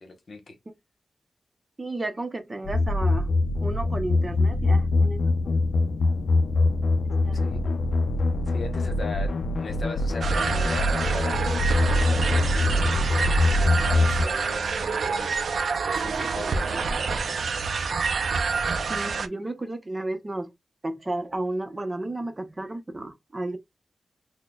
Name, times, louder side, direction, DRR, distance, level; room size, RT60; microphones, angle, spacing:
voice 1, 0.0-0.5 7.3-7.6 8.5-11.4 11.7-15.3 15.7-16.8, left 2 dB, 60° left, 1.0 m, -39 dB
voice 2, 1.8-3.3 3.6-5.5 7.2-7.7 18.9-20.5 20.8-23.6, right 2 dB, 25° right, 0.6 m, -33 dB
sound 1, 2.7-14.2, left 2 dB, 80° left, 0.4 m, -23 dB
sound 2, 10.2-19.3, right 5 dB, 80° right, 0.4 m, -27 dB
5.9 x 2.1 x 2.2 m
wide cardioid pair, 105°, 0 cm